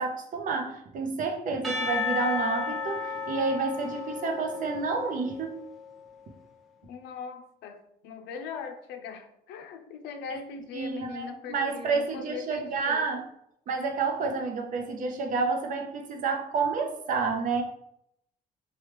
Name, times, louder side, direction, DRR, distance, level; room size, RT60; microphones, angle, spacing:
voice 1, 0.0-5.5 10.3-10.4 10.7-13.2 13.7-17.6, right 4 dB, 50° right, 2 dB, 0.6 m, -29 dB
Percussion / Church bell, 1.6-5.8, left 5 dB, ahead, 0.6 m, -33 dB
voice 2, 6.8-13.1, left 6 dB, 80° left, 7 dB, 0.5 m, -40 dB
3.1 x 2.3 x 3.2 m, 0.76 s
cardioid pair, 110°, 17 cm